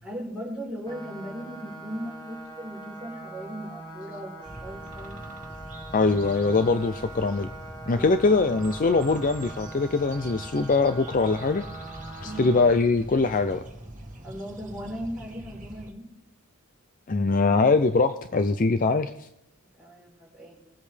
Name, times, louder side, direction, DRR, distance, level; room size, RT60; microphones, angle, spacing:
voice 1, 0.0-5.2 7.9-8.3 12.2-12.5 14.2-16.0 19.8-20.7, equal, 5° right, -4 dB, 3.9 m, -38 dB
sound 1, 0.9-12.8, right 2 dB, 20° left, 1.7 m, -43 dB
Woodpecker and Other Birds, 4.4-15.9, right 1 dB, 35° right, 1.8 m, -43 dB
voice 2, 5.9-7.5 7.9-11.6 12.2-13.6 17.1-19.1, left 3 dB, 40° left, 10 dB, 0.5 m, -22 dB
21.5 x 8.2 x 3.4 m, 0.82 s
head